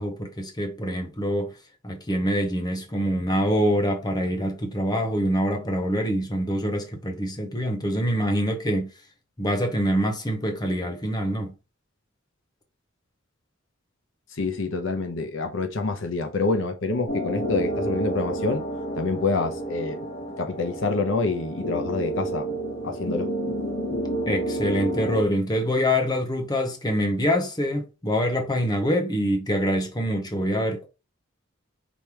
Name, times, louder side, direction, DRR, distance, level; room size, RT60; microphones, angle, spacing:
voice 1, 0.0-1.5 1.8-8.9 9.4-11.5 24.3-30.9, equal, 20° left, 1.0 m, -25 dB
voice 2, 14.4-18.6 18.9-20.0 20.4-22.5 22.8-23.3, left 3 dB, 70° left, 0.8 m, -27 dB
sound 1, 17.1-25.2, right 1 dB, 50° left, 2.4 m, -30 dB
5.3 x 3.2 x 3.0 m
head